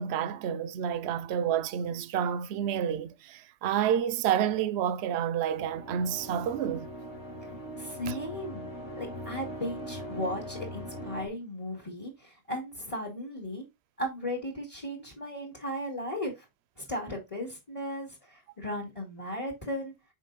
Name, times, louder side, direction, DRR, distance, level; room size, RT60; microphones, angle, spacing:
voice 1, 0.0-6.9 8.1-8.2, right 9 dB, 70° right, 0.8 m, -29 dB
sound 1, 5.5-11.3, equal, 80° left, 2.4 m, -41 dB
voice 2, 7.8-8.6 9.0-13.6 14.0-16.4 16.8-19.9, left 1 dB, 30° left, 2.0 m, -36 dB
5.9 x 4.6 x 3.9 m
omnidirectional pair, 1.2 m